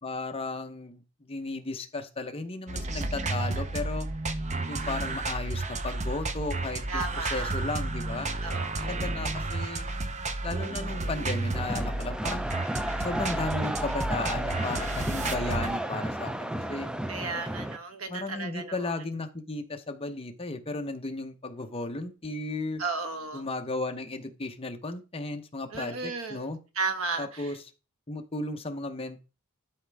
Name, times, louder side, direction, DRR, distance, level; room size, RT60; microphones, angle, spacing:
voice 1, 0.0-4.1 4.7-8.3 8.8-9.9 10.4-12.5 13.0-16.9 18.1-22.8 23.3-26.6 27.2-27.6 28.1-29.2, left 2 dB, 25° left, 0.9 m, -35 dB
sound 1, 2.7-15.7, right 2 dB, 35° right, 0.7 m, -32 dB
voice 2, 6.9-7.5 8.4-8.9 12.9-13.1 17.1-19.0 22.8-23.4 25.7-26.5 26.7-27.5, right 4 dB, 75° right, 1.3 m, -34 dB
sound 2, 11.5-17.8, right 1 dB, 5° right, 0.4 m, -33 dB
12.0 x 5.1 x 3.4 m
head